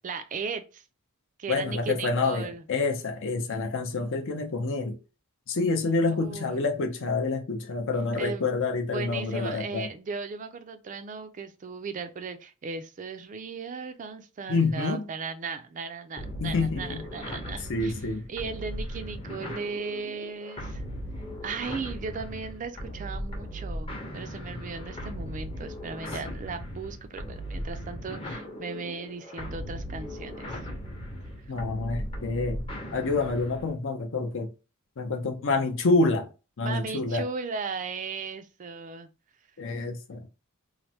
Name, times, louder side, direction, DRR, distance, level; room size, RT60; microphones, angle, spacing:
voice 1, 0.0-0.8 1.4-2.6 6.1-6.6 8.2-8.5 8.9-17.9 18.3-20.8 21.4-30.7 36.6-39.1, right 5 dB, 35° right, 0.3 m, -37 dB
voice 2, 1.5-5.0 5.5-9.9 14.5-15.0 16.4-17.0 17.7-18.3 31.5-32.6 32.9-34.5 35.0-36.3 36.6-37.3 39.6-40.3, left 3 dB, 60° left, 0.6 m, -27 dB
sound 1, 16.2-33.8, equal, 25° left, 0.7 m, -38 dB
3.1 x 2.0 x 2.7 m
head